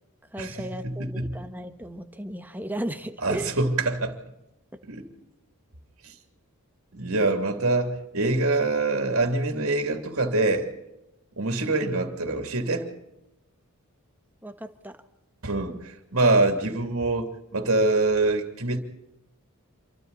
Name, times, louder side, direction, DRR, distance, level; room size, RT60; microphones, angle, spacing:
voice 1, 0.3-3.5 14.4-15.0, right 1 dB, 10° right, 1.3 m, -35 dB
voice 2, 0.8-1.4 3.2-4.2 4.8-5.1 6.0-6.1 6.9-10.7 11.4-12.9 15.4-18.8, right 2 dB, 65° right, 2.8 m, -25 dB
27.5 x 24.0 x 4.1 m
head